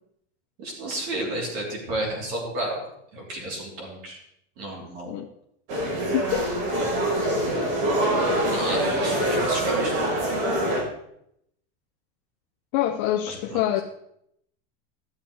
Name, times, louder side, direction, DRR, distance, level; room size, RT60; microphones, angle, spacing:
voice 1, 0.6-2.8 3.1-4.2 4.6-5.1 6.8-7.1 8.5-9.9 13.3-13.6, right 1 dB, 45° right, -2 dB, 3.3 m, -32 dB
sound 1, 5.7-10.8, right 1 dB, 70° right, 3.8 m, -24 dB
voice 2, 6.1-6.5 12.7-13.8, left 12 dB, 40° left, 2 dB, 0.6 m, -25 dB
14.0 x 7.1 x 3.2 m, 0.74 s
supercardioid pair, 175°, 29 cm